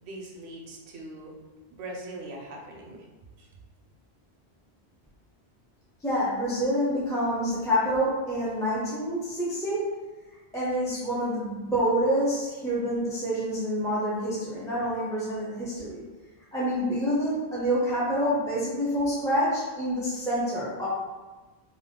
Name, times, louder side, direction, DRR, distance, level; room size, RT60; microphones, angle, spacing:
voice 1, 0.0-1.3 1.7-3.1 3.4-3.5, right 1 dB, 80° right, -1 dB, 0.8 m, -41 dB
voice 2, 6.0-9.9 10.5-16.0 16.5-20.9, equal, 5° left, -8 dB, 0.6 m, -27 dB
2.7 x 2.3 x 3.5 m, 1.2 s
omnidirectional pair, 1.1 m